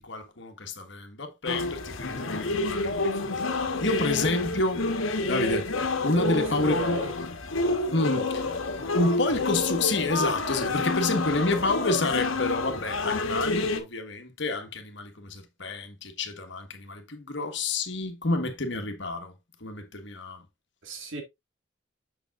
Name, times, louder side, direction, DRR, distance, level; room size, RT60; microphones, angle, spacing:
voice 1, 0.0-3.1 3.4-3.5 3.8-4.9 5.2-5.7 6.0-7.0 7.9-8.2 8.9-19.3 19.6-20.4, left 2 dB, 60° left, 1.5 m, -29 dB
sound 1, 1.5-13.8, left 2 dB, 85° left, 1.3 m, -29 dB
voice 2, 6.0-7.1 7.6-8.2 20.8-21.2, right 3 dB, 75° right, 2.0 m, -34 dB
7.0 x 6.9 x 2.5 m
head